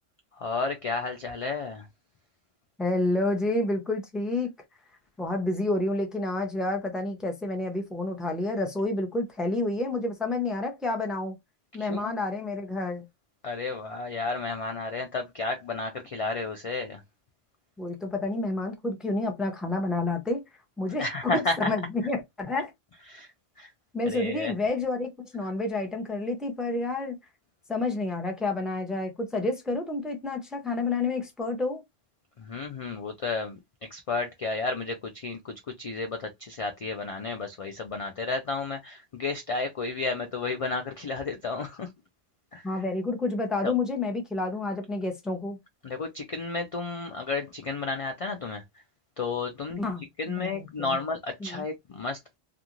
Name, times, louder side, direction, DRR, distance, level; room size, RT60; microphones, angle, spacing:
voice 1, 0.4-1.9 11.8-12.1 13.4-17.0 21.0-21.7 23.1-23.3 23.6-23.7 24.1-24.5 32.4-33.6 33.9-41.9 42.5-42.7 43.6-43.7 45.8-48.6 49.2-49.8 50.2-52.2, left 3 dB, 65° left, 0.3 m, -32 dB
voice 2, 2.8-4.5 5.2-11.4 11.7-13.1 17.8-20.4 20.8-22.7 23.9-27.2 27.7-31.8 42.6-45.6 49.8-51.0 51.4-51.6, left 2 dB, ahead, 0.4 m, -29 dB
2.5 x 2.4 x 2.9 m
omnidirectional pair, 1.1 m